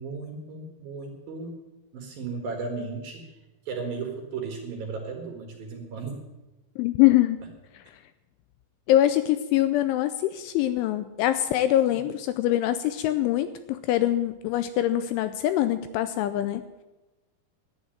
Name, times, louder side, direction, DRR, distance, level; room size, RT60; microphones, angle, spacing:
voice 1, 0.0-1.6 1.9-3.4 3.7-6.3 11.9-12.1, right 4 dB, 60° right, 2 dB, 2.7 m, -35 dB
voice 2, 6.8-7.4 8.9-16.6, left 13 dB, 85° left, 11 dB, 2.8 m, -24 dB
11.5 x 9.8 x 9.0 m, 1.1 s
omnidirectional pair, 6.0 m